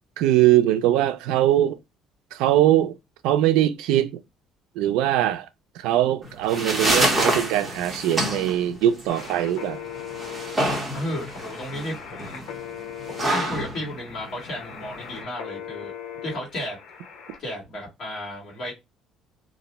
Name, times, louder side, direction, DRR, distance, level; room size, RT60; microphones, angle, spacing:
voice 1, 0.2-1.8 2.3-2.9 3.2-4.1 4.8-5.5 5.8-9.8, right 12 dB, 90° right, 0.4 m, -21 dB
sound 1, 6.2-15.2, right 1 dB, 10° right, 0.8 m, -27 dB
sound 2, 9.1-17.4, left 8 dB, 80° left, 0.8 m, -39 dB
voice 2, 10.9-12.5 13.1-15.9 16.2-16.8 17.4-18.7, left 1 dB, 40° left, 1.4 m, -33 dB
2.5 x 2.0 x 3.9 m
cardioid pair, 160°, 0 cm